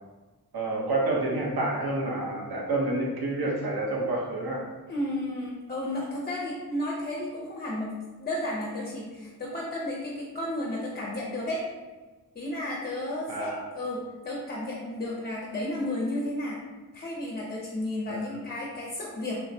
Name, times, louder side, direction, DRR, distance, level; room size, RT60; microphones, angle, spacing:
voice 1, 0.5-4.6 13.3-13.6 18.1-18.2, right 2 dB, 75° right, -3 dB, 0.8 m, -28 dB
voice 2, 4.9-11.6 12.3-16.6 16.9-19.4, left 1 dB, 25° left, -2 dB, 0.4 m, -33 dB
3.2 x 2.1 x 2.6 m, 1.2 s
wide cardioid pair, 75°, 38 cm